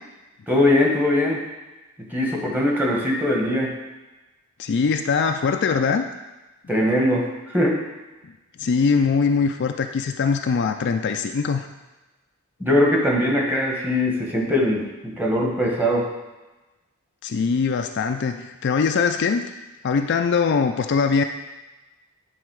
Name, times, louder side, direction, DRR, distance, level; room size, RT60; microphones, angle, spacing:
voice 1, 0.5-1.4 2.1-3.7 6.7-7.8 12.6-16.1, left 1 dB, 10° right, -2 dB, 1.3 m, -21 dB
voice 2, 4.6-6.0 8.6-11.7 17.2-19.4 19.8-21.2, left 5 dB, 55° left, 6 dB, 0.4 m, -22 dB
9.6 x 4.0 x 4.7 m, 1.1 s
head